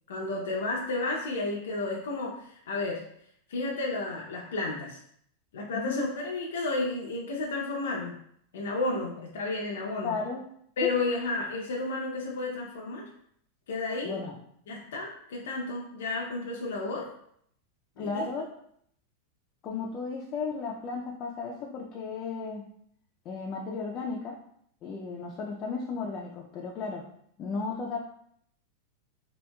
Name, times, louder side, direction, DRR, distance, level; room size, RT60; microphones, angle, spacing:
voice 1, 0.1-3.0 3.5-5.0 5.5-8.2 8.5-10.2 10.8-13.1 13.7-14.2 14.7-17.1 18.0-18.2, left 2 dB, 90° left, -2 dB, 0.5 m, -32 dB
voice 2, 10.0-10.4 10.8-10.9 14.0-14.3 18.0-18.5 19.6-22.6 23.3-24.4 24.8-27.0 27.4-28.0, left 4 dB, 30° left, -1 dB, 0.3 m, -34 dB
2.8 x 2.7 x 2.2 m, 0.68 s
supercardioid pair, 160°, 0 cm